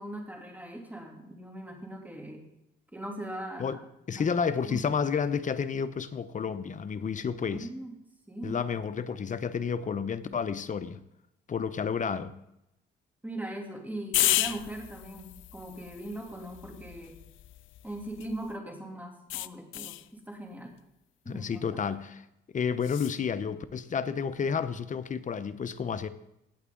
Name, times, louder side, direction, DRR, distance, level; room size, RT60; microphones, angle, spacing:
voice 1, 0.0-2.4 2.9-3.8 4.1-4.3 4.6-5.0 7.4-7.9 8.3-8.6 13.2-17.2 17.8-20.7 21.2-21.6, right 1 dB, 10° right, 1 dB, 2.8 m, -40 dB
voice 2, 4.1-7.7 8.4-11.0 11.5-12.4 21.3-22.2 22.5-26.1, left 6 dB, 40° left, 13 dB, 0.8 m, -31 dB
sound 1, 14.1-18.5 19.3-20.1 22.8-23.2, left 15 dB, 80° left, 0.5 m, -33 dB
17.5 x 8.1 x 3.8 m, 0.83 s
cardioid pair, 90°, 20 cm